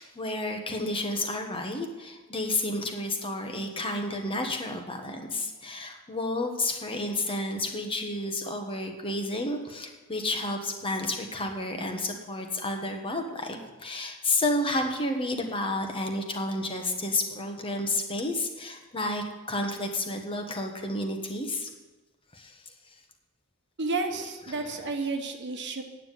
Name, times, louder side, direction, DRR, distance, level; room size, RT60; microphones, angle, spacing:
voice 1, 0.0-21.7 22.3-22.6 24.5-24.9, left 2 dB, 25° left, 4 dB, 1.3 m, -31 dB
voice 2, 23.8-25.8, right 3 dB, 55° right, 5 dB, 1.3 m, -31 dB
9.3 x 7.5 x 9.1 m, 1.2 s
head